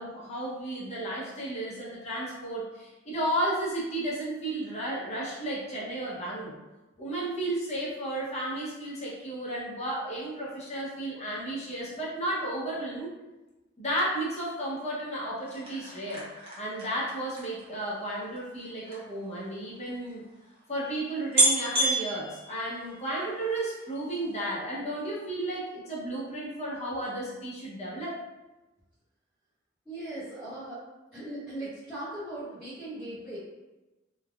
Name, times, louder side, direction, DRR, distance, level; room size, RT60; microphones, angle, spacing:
voice 1, 0.0-6.6 7.0-13.1 13.8-16.3 16.6-20.2 20.7-28.2, right 1 dB, 35° left, -6 dB, 0.7 m, -33 dB
sound 1, 15.4-19.0 19.8-19.9 20.1-20.2 20.8-20.9 21.3-23.2 23.6-24.1 24.3-24.4, right 2 dB, 30° right, 0.8 m, -29 dB
voice 2, 29.8-30.9 31.1-33.4, right 1 dB, 5° left, -14 dB, 1.1 m, -39 dB
3.2 x 2.2 x 2.3 m, 1.1 s
head